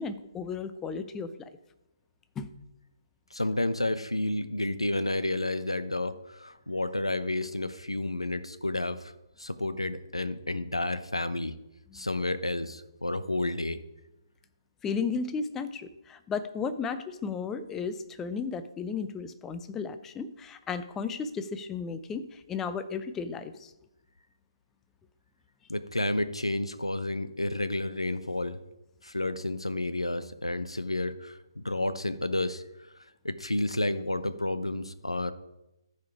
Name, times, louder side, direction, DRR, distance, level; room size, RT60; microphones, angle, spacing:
voice 1, 0.0-1.5 2.4-2.5 11.9-12.0 14.8-23.7, left 5 dB, 10° left, 12 dB, 0.5 m, -34 dB
voice 2, 3.3-9.1 9.4-11.6 11.9-13.8 25.7-28.6 29.0-32.6 33.2-35.3, left 2 dB, 85° left, 13 dB, 0.8 m, -31 dB
14.0 x 5.0 x 4.7 m, 0.93 s
figure-of-eight pair, 140°, 3 cm